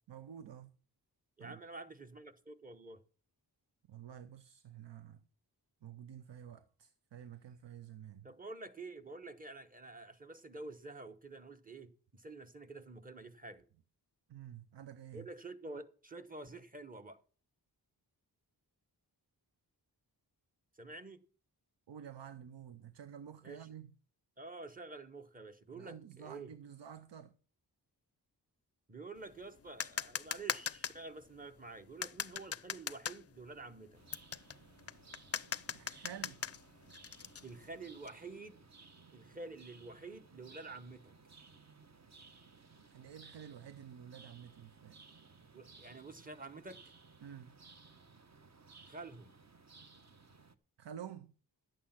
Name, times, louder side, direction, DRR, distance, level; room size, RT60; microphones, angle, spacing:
voice 1, 0.1-0.7 1.4-1.6 3.9-5.2 5.8-8.3 14.3-15.3 21.9-23.9 25.7-27.3 35.7-36.4 42.9-45.0 47.2-47.6 50.8-51.3, right 9 dB, 85° right, 0.7 m, -50 dB
voice 2, 1.4-3.0 8.2-13.6 15.1-17.2 20.8-21.2 23.4-23.7 24.4-26.5 28.9-34.0 37.4-38.7 39.1-41.1 45.5-46.8 48.9-49.3, right 3 dB, 20° right, 1.1 m, -49 dB
sound 1, 29.2-38.1, left 7 dB, 35° left, 0.5 m, -41 dB
sound 2, 33.9-50.5, right 4 dB, 40° right, 1.0 m, -60 dB
11.5 x 8.4 x 5.8 m
wide cardioid pair, 65°, 42 cm